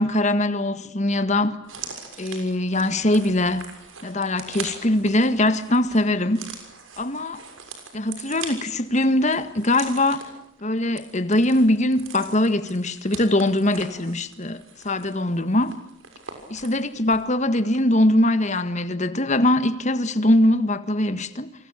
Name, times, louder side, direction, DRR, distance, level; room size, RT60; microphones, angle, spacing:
voice 1, 0.0-1.6 2.2-3.7 4.0-6.5 7.0-7.4 7.9-10.3 10.6-15.7 16.5-21.5, left 1 dB, 35° left, 1.8 m, -22 dB
sound 1, 1.6-17.3 17.6-17.8, right 6 dB, 90° right, 6.6 m, -42 dB
28.5 x 24.5 x 8.5 m
head